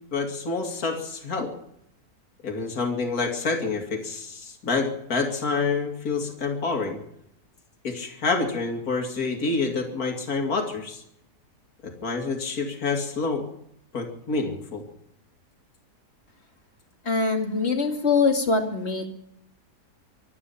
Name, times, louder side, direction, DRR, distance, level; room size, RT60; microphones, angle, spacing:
voice 1, 0.1-1.5 2.4-7.0 7.8-11.0 11.8-13.5 13.9-14.8, left 4 dB, 65° left, 2 dB, 2.9 m, -27 dB
voice 2, 17.1-19.1, left 4 dB, 40° left, 4 dB, 2.4 m, -23 dB
25.0 x 9.8 x 5.7 m, 0.74 s
omnidirectional pair, 1.7 m